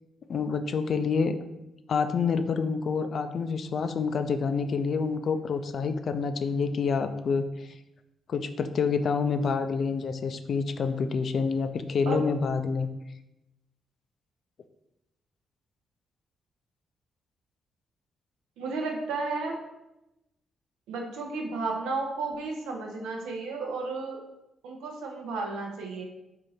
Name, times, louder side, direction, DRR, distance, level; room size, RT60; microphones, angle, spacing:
voice 1, 0.3-1.4 1.9-7.7 8.3-12.9, left 5 dB, 60° left, 9 dB, 0.3 m, -27 dB
voice 2, 18.6-19.6 20.9-24.2 24.6-26.0, right 3 dB, 80° right, 1 dB, 0.6 m, -33 dB
3.6 x 2.5 x 4.1 m, 0.94 s
hypercardioid pair, 45°, 0 cm